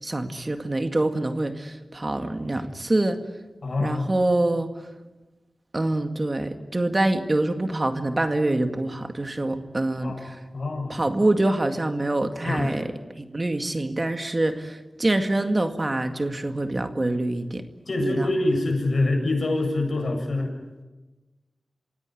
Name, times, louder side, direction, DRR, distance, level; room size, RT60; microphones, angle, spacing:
voice 1, 0.0-3.2 3.8-4.7 5.7-10.4 10.9-12.9 13.2-17.6 18.0-18.3, right 2 dB, 40° right, 7 dB, 2.1 m, -25 dB
voice 2, 3.6-4.1 10.0-10.2 10.5-10.9 12.4-12.7 17.9-20.5, left 2 dB, 70° left, 3 dB, 7.7 m, -25 dB
27.5 x 17.0 x 9.3 m, 1.1 s
cardioid pair, 50°, 0 cm